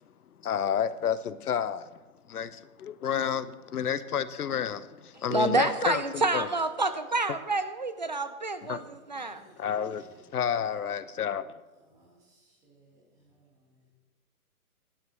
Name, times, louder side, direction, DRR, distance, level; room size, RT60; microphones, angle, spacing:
voice 1, 0.4-1.9 2.3-6.5 7.3-7.4 8.7-8.8 9.6-11.5, left 8 dB, 80° left, 0.9 m, -30 dB
voice 2, 5.3-9.4, right 3 dB, 30° right, 0.5 m, -28 dB
voice 3, 9.1-10.2 11.8-13.9, right 2 dB, 10° right, 1.3 m, -60 dB
17.0 x 12.0 x 3.1 m
hypercardioid pair, 170°, 44 cm